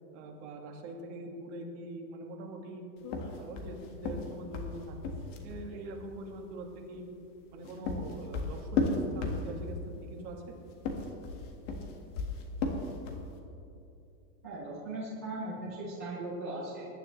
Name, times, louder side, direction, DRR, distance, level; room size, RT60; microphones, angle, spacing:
voice 1, 0.1-2.8 3.3-5.0 5.2-7.0 7.5-10.4, right 1 dB, 45° right, 1 dB, 1.9 m, -43 dB
sound 1, 3.0-5.7 7.4-9.8 10.7-13.3, left 3 dB, 45° left, 1.6 m, -34 dB
voice 2, 14.4-16.8, right 2 dB, 10° right, -8 dB, 0.3 m, -38 dB
20.5 x 10.5 x 3.1 m, 2.8 s
supercardioid pair, 165°, 50 cm